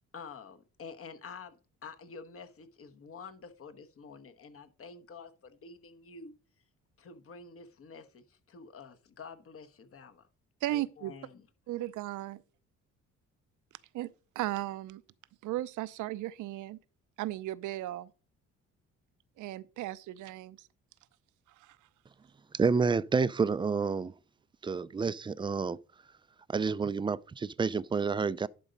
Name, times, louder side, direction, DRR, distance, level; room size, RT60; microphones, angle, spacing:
voice 1, 0.1-6.3 7.0-10.3 10.7-11.5, left 5 dB, 50° left, 1.1 m, -48 dB
voice 2, 10.6-11.1 11.7-12.4 13.9-14.1 14.4-15.0 15.4-16.8 17.2-18.1 19.4-20.7 21.6-21.8, right 15 dB, 80° right, 0.6 m, -36 dB
voice 3, 22.5-24.1 24.6-25.8 26.5-28.5, right 5 dB, 15° right, 0.3 m, -29 dB
11.0 x 4.0 x 5.2 m
cardioid pair, 90°, 30 cm